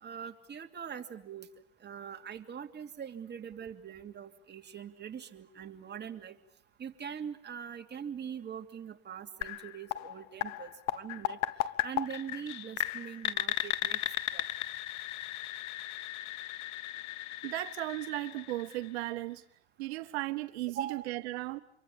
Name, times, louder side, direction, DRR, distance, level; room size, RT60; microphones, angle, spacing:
voice 1, 0.0-1.5 1.8-6.4 6.8-11.4 11.8-14.0 14.3-14.5 20.8-21.1, right 8 dB, 35° right, 2.8 m, -42 dB
sound 1, 9.4-19.2, left 15 dB, 60° left, 1.4 m, -36 dB
voice 2, 17.4-19.4 19.8-21.6, right 18 dB, 80° right, 1.1 m, -36 dB
27.5 x 23.5 x 8.7 m
supercardioid pair, 95°, 32 cm